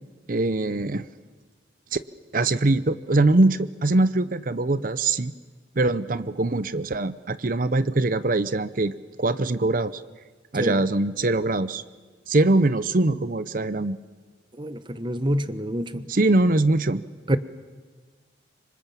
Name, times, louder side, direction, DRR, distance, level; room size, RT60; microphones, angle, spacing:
voice 1, 0.3-1.1 1.9-2.0 2.3-5.3 5.8-8.9 9.2-10.0 10.5-11.8 12.3-14.0 16.1-17.0, right 2 dB, 50° right, 14 dB, 0.8 m, -22 dB
voice 2, 14.6-16.0 17.3-17.4, equal, 25° right, 12 dB, 1.1 m, -27 dB
26.5 x 25.0 x 7.1 m, 1.5 s
head